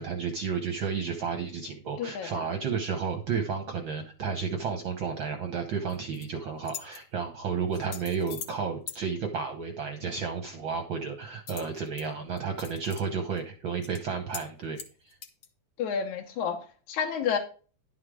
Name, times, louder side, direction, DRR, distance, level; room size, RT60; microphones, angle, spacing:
voice 1, 0.0-14.8 15.0-15.2, right 6 dB, 65° right, 1.2 m, -32 dB
voice 2, 2.0-2.3 15.8-17.4, left 7 dB, 75° left, 2.3 m, -30 dB
sound 1, 5.9-6.3 6.6-7.0 7.7-8.6 8.9-9.0 11.5-12.0 12.4-13.0 13.4-13.5 13.8-14.0 14.3-14.5 14.8-15.5, left 7 dB, 55° left, 1.4 m, -41 dB
11.5 x 5.8 x 4.9 m
omnidirectional pair, 3.5 m